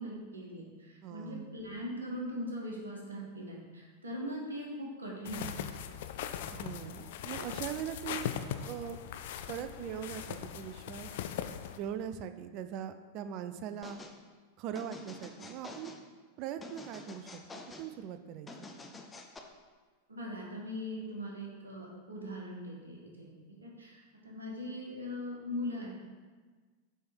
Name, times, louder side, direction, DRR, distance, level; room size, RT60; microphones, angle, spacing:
voice 1, 0.0-5.7 20.1-23.3 23.6-25.9, equal, 75° right, -2 dB, 1.3 m, -40 dB
voice 2, 1.0-1.6 6.5-8.3 8.6-9.0 9.5-11.1 11.8-14.0 14.6-15.9 16.4-17.4 17.8-18.7, right 9 dB, 40° right, 10 dB, 0.4 m, -41 dB
sound 1, 5.2-11.8, left 9 dB, 55° left, 0.3 m, -40 dB
sound 2, 13.8-14.2 14.8-16.0 16.6-17.9 18.5-19.4, left 2 dB, 15° left, 0.6 m, -48 dB
7.4 x 3.4 x 4.5 m, 1.4 s
figure-of-eight pair, 90°, 0 cm